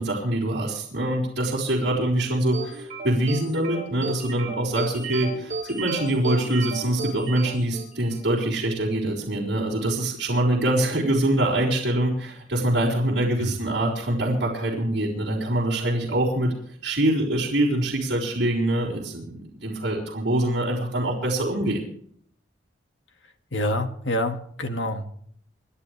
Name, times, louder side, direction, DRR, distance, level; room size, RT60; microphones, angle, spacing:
voice 1, 0.0-16.5 16.8-19.3 19.6-21.8, right 1 dB, 60° right, -6 dB, 4.7 m, -24 dB
sound 1, 2.5-8.3, right 4 dB, 40° right, 3.4 m, -34 dB
voice 2, 23.5-25.1, left 1 dB, 90° left, 6 dB, 1.9 m, -27 dB
29.0 x 11.5 x 3.4 m, 0.62 s
head